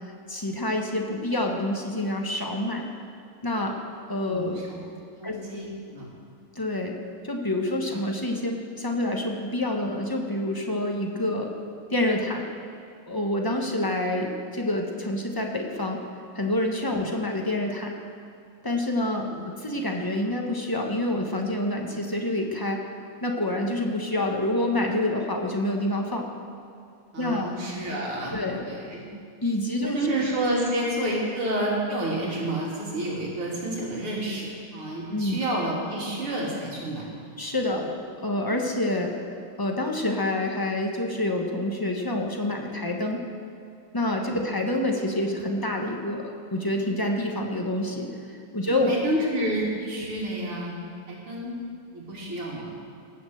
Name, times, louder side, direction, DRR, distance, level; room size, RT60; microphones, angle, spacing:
voice 1, 0.3-2.9 3.4-3.8 4.1-4.6 5.2-5.4 6.5-7.0 7.2-11.5 11.9-12.4 13.1-16.0 16.3-17.9 18.6-22.8 23.2-26.3 27.2-27.5 28.3-28.6 29.4-30.0 35.1-35.4 37.4-37.9 38.2-39.1 39.6-43.2 43.9-48.9, left 1 dB, 15° left, 1 dB, 0.7 m, -27 dB
voice 2, 4.3-4.8 5.2-5.7 5.9-6.1 7.8-7.9 16.9-17.0 19.2-19.4 27.1-29.0 29.8-37.3 37.7-37.9 44.3-44.5 48.7-50.8 51.1-51.5 51.9-52.7, right 1 dB, 75° right, -4 dB, 3.9 m, -30 dB
19.0 x 7.1 x 7.8 m, 2.4 s
omnidirectional pair, 2.4 m